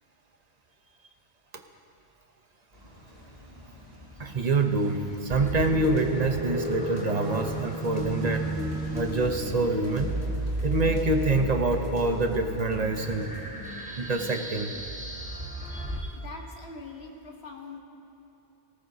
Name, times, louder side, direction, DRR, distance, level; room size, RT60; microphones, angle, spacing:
sound 1, 2.7-14.6, left 1 dB, 70° right, 4.3 m, -46 dB
voice 1, 4.2-8.5 8.9-10.1 10.6-13.3 14.0-14.7 15.7-16.1, right 2 dB, 45° right, 5 dB, 0.9 m, -26 dB
sound 2, 5.3-16.0, right 1 dB, 5° right, 1.2 m, -33 dB
sound 3, 5.5-13.5, right 1 dB, 45° left, 1.9 m, -43 dB
voice 2, 16.1-17.8, left 3 dB, 80° left, 1 dB, 1.6 m, -42 dB
18.5 x 17.5 x 2.8 m, 3.0 s
omnidirectional pair, 1.1 m